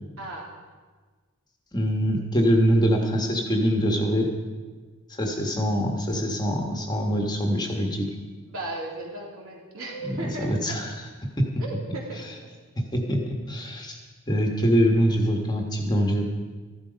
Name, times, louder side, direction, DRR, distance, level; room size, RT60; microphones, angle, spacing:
voice 1, 0.2-0.5 8.5-10.8 11.6-12.2, right 2 dB, 65° right, -2 dB, 3.1 m, -35 dB
voice 2, 1.7-4.3 5.2-8.1 10.0-11.0 11.4-11.5 11.9-12.0 12.8-14.0 14.3-16.3, equal, 20° left, 2 dB, 1.4 m, -24 dB
14.0 x 12.0 x 5.2 m, 1.4 s
head